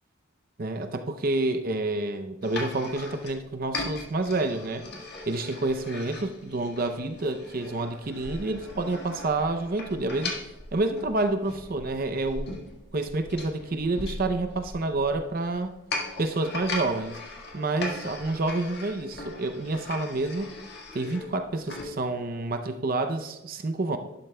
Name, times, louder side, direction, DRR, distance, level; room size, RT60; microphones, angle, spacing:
voice 1, 0.6-4.8 5.3-10.3 10.7-12.6 12.9-15.7 16.2-17.2 17.5-20.5 20.9-24.0, right 2 dB, 45° right, 8 dB, 0.5 m, -28 dB
sound 1, 2.4-21.9, left 2 dB, 50° left, 1.7 m, -39 dB
12.0 x 11.5 x 2.2 m, 1.0 s
head